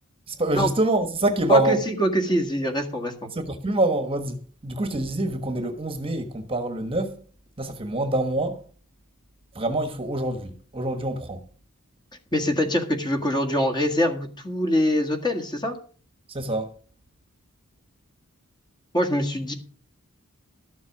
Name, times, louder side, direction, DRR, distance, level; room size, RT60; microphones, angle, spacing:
voice 1, 0.3-1.8 3.3-7.2 7.6-8.6 9.5-11.5 16.3-16.7, right 2 dB, 25° right, 1.3 m, -25 dB
voice 2, 1.5-3.3 12.3-15.8 18.9-19.5, equal, 20° left, 1.7 m, -24 dB
13.0 x 7.4 x 6.0 m
head